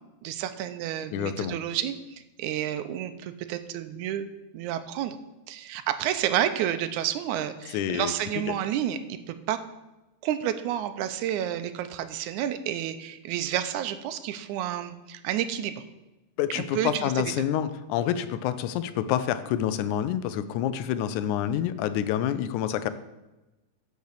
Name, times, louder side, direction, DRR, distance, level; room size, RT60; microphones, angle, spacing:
voice 1, 0.2-4.3 4.5-5.2 5.5-9.6 10.2-15.7 16.6-17.3, right 11 dB, 80° right, 11 dB, 2.1 m, -30 dB
voice 2, 1.1-1.6 7.7-8.1 16.4-22.9, left 10 dB, 90° left, 12 dB, 2.1 m, -27 dB
8.1 x 6.2 x 6.6 m, 1.0 s
omnidirectional pair, 3.4 m